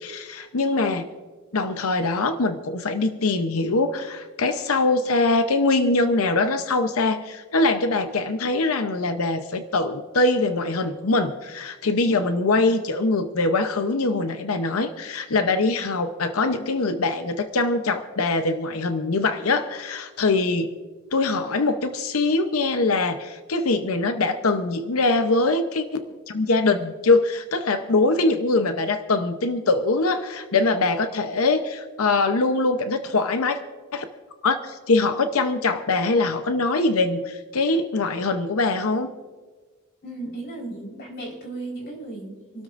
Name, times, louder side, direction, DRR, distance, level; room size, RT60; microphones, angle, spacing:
voice 1, 0.0-1.0 1.5-20.7 21.1-33.6 33.9-34.1 34.4-39.1, left 3 dB, 80° left, 8 dB, 0.8 m, -23 dB
voice 2, 40.0-42.6, right 2 dB, 50° left, -2 dB, 4.3 m, -36 dB
27.5 x 12.5 x 2.6 m, 1.4 s
head